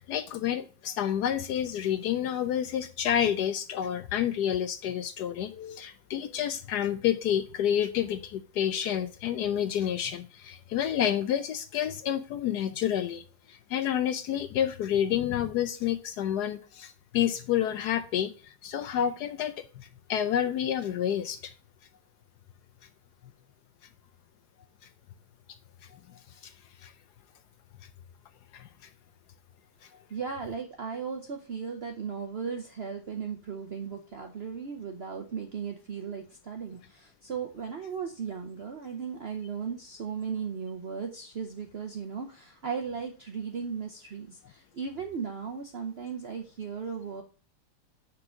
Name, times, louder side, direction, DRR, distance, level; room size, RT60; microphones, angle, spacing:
voice 1, 0.0-21.5 26.4-26.5 26.8-26.9 28.5-28.7, left 10 dB, 75° left, 1.0 m, -29 dB
voice 2, 30.1-47.2, right 6 dB, 75° right, 0.5 m, -36 dB
6.1 x 4.6 x 6.3 m
omnidirectional pair, 2.1 m